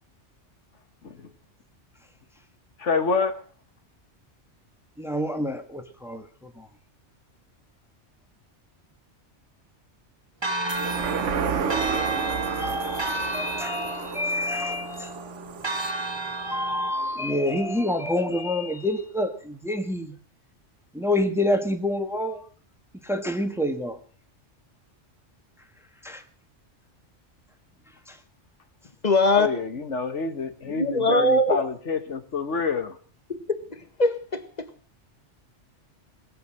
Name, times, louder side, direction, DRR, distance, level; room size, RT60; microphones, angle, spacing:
voice 1, 2.8-3.4 29.4-33.0, left 4 dB, 80° left, 1.8 m, -27 dB
voice 2, 5.0-6.7 12.3-15.3 16.2-20.1 20.9-22.5 23.0-24.0 26.0-26.2 28.1-28.2, left 1 dB, ahead, 1.6 m, -28 dB
Church bell, 10.4-16.9, right 2 dB, 25° right, 1.5 m, -31 dB
sound 1, 10.7-17.5 17.9-18.0, right 7 dB, 85° right, 1.4 m, -32 dB
voice 3, 29.0-29.6 30.7-31.6 33.3-34.7, left 2 dB, 35° left, 1.8 m, -22 dB
21.0 x 8.3 x 7.7 m
omnidirectional pair, 1.2 m